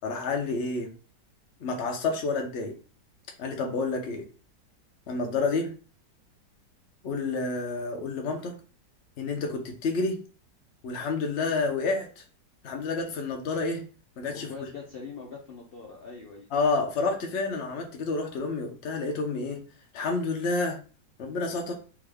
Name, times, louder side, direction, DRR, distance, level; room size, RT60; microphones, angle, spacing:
voice 1, 0.0-0.9 1.6-2.7 3.4-4.2 5.1-5.7 7.0-8.5 9.2-10.2 10.8-12.2 12.6-13.8 14.2-14.5 16.5-19.6 19.9-20.8 21.2-21.7, left 3 dB, 50° left, 0.9 m, -29 dB
voice 2, 14.3-16.5, left 4 dB, 90° left, 0.5 m, -42 dB
3.6 x 2.7 x 3.4 m
omnidirectional pair, 1.9 m